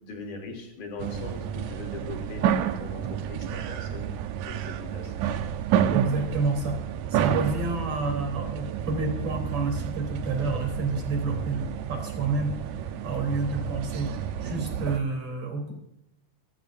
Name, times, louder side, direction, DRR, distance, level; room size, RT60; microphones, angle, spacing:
voice 1, 0.0-2.4 2.8-4.1 4.5-5.3, left 3 dB, 75° left, 1 dB, 4.6 m, -40 dB
sound 1, 1.0-15.0, right 9 dB, 75° right, 2.1 m, -30 dB
voice 2, 5.9-6.8 7.1-12.5 13.0-14.1 14.4-15.7, right 3 dB, 50° right, 2 dB, 4.5 m, -29 dB
25.5 x 14.0 x 2.6 m, 0.82 s
omnidirectional pair, 3.7 m